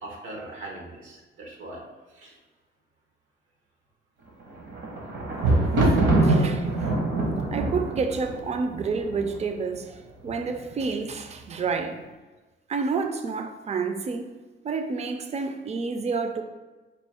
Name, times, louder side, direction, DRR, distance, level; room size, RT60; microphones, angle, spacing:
voice 1, 0.0-1.8 2.1-2.4, right 2 dB, 85° right, 1.0 m, -40 dB
Thunder, 4.4-9.5 10.3-10.8 11.0-11.1, right 2 dB, 70° right, 1.0 m, -24 dB
voice 2, 6.2-6.9 7.5-12.0 12.7-14.3 14.6-16.4, right 4 dB, 35° right, 0.4 m, -29 dB
4.3 x 2.3 x 3.5 m
cardioid pair, 90°, 20 cm